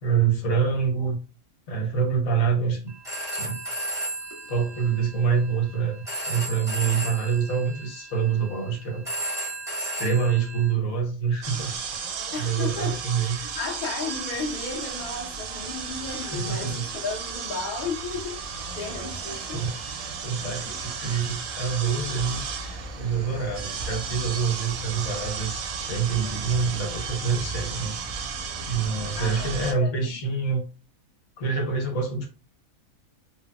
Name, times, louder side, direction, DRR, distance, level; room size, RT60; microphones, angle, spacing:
voice 1, 0.0-1.2 1.7-2.8 3.3-3.6 4.5-6.0 6.3-9.0 9.8-11.7 12.4-13.4 16.2-16.9 19.5-19.8 20.2-28.0 28.7-30.6 31.4-32.3, right 6 dB, 80° left, 1.2 m, -26 dB
Telephone, 2.9-10.7, right 1 dB, 5° right, 0.7 m, -34 dB
sound 1, 11.4-29.7, right 5 dB, 90° right, 1.0 m, -34 dB
voice 2, 12.3-19.6 29.1-30.1, left 4 dB, 45° left, 0.7 m, -34 dB
3.3 x 2.1 x 2.2 m
omnidirectional pair, 1.4 m